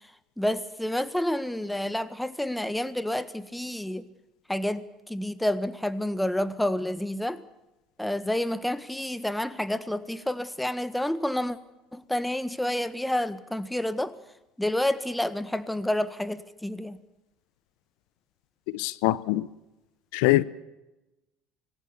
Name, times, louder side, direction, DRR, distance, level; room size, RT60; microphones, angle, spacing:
voice 1, 0.4-4.0 4.5-7.4 8.0-11.6 11.9-14.1 14.6-17.0, left 1 dB, 5° left, 1.6 m, -29 dB
voice 2, 18.7-19.5 20.1-20.4, left 18 dB, 70° left, 0.7 m, -23 dB
25.5 x 19.5 x 7.1 m
hypercardioid pair, 65°, 0 cm